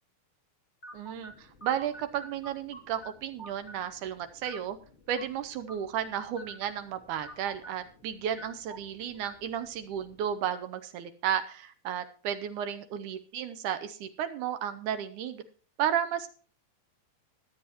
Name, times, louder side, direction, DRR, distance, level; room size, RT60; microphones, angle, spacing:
sound 1, 0.8-10.3, right 1 dB, 25° left, 1.8 m, -50 dB
voice 1, 0.9-4.8 5.1-15.4 15.8-16.3, right 9 dB, 75° right, 10 dB, 1.9 m, -33 dB
21.5 x 7.8 x 2.9 m, 0.40 s
omnidirectional pair, 4.3 m